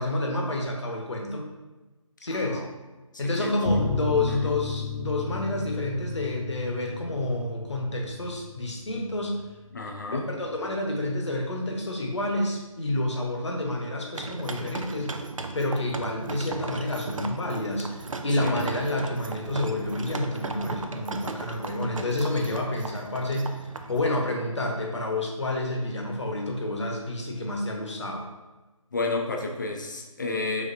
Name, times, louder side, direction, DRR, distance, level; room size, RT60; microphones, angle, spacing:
voice 1, 0.0-1.5 2.2-2.6 3.2-9.3 10.1-15.2 15.5-28.3, left 1 dB, 55° left, 1 dB, 1.0 m, -29 dB
voice 2, 2.3-2.7 3.2-3.5 4.3-4.4 9.7-10.3 18.4-18.7 28.9-30.7, left 3 dB, 35° left, 2 dB, 0.6 m, -31 dB
sound 1, 3.6-10.8 11.0-11.1 11.4-11.5, left 5 dB, 80° left, 0.7 m, -34 dB
sound 2, 14.2-24.1, right 3 dB, 65° right, 0.5 m, -36 dB
5.2 x 3.5 x 2.6 m, 1.1 s
figure-of-eight pair, 160°, 18 cm